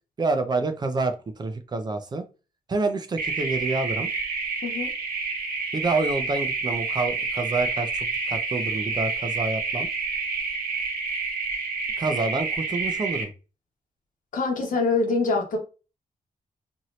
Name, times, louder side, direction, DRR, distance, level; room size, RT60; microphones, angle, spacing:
voice 1, 0.2-2.2 2.7-4.1 5.7-9.9 12.0-13.3, right 3 dB, 30° right, 0.5 m, -27 dB
sound 1, 3.2-13.2, right 4 dB, 80° right, 0.8 m, -29 dB
voice 2, 4.6-4.9 14.3-15.6, left 3 dB, 60° left, 1.0 m, -24 dB
2.8 x 2.6 x 3.0 m
wide cardioid pair, 165°, 15 cm